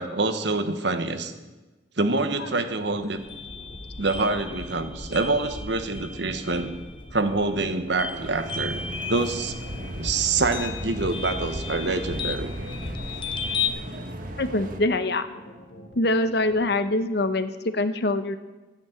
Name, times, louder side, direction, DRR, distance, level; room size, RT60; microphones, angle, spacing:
voice 1, 0.0-1.3 2.0-3.2 4.0-6.7 7.1-8.8 9.1-9.5 10.0-12.5, right 3 dB, 65° right, 9 dB, 1.2 m, -26 dB
sound 1, 2.3-16.8, left 1 dB, 85° left, 2.7 m, -48 dB
sound 2, 3.2-13.7, left 4 dB, 25° left, 1.0 m, -35 dB
sound 3, 8.1-14.8, right 1 dB, 45° right, 1.5 m, -36 dB
voice 2, 14.4-15.3 15.9-18.4, left 2 dB, 55° left, 11 dB, 0.9 m, -24 dB
14.0 x 9.6 x 7.9 m, 1.2 s
head